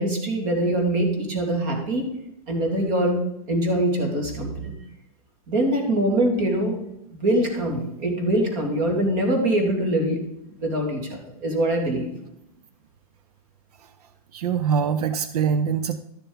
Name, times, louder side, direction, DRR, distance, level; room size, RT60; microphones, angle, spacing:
voice 1, 0.0-2.1 2.5-3.2 3.5-4.7 5.5-6.8 7.1-10.2 10.6-12.1, right 1 dB, 35° right, 2 dB, 2.5 m, -23 dB
voice 2, 14.3-16.0, right 7 dB, 90° right, 11 dB, 0.7 m, -23 dB
12.5 x 6.9 x 3.9 m, 0.85 s
supercardioid pair, 175°, 19 cm